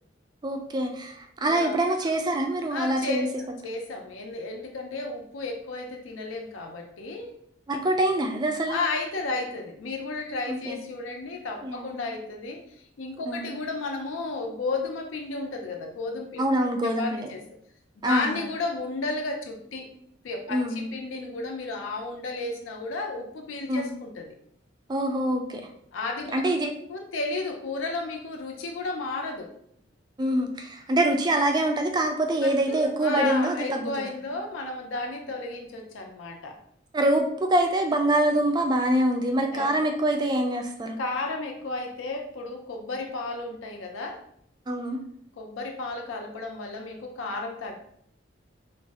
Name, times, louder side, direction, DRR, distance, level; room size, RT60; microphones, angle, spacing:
voice 1, 0.4-3.3 7.7-8.8 10.5-10.8 11.6-12.0 13.3-13.5 16.4-17.3 18.0-18.4 20.5-20.9 23.7-23.9 24.9-25.6 26.3-26.7 30.2-33.9 36.9-41.0 44.7-45.0, right 1 dB, 20° right, 4 dB, 0.3 m, -25 dB
voice 2, 1.4-1.8 2.7-7.3 8.7-12.6 13.0-17.4 18.0-19.9 20.2-24.3 25.9-29.5 32.4-36.6 39.5-39.7 41.0-44.2 45.4-47.7, left 3 dB, 90° left, 2 dB, 0.4 m, -33 dB
2.5 x 2.0 x 3.3 m, 0.68 s
head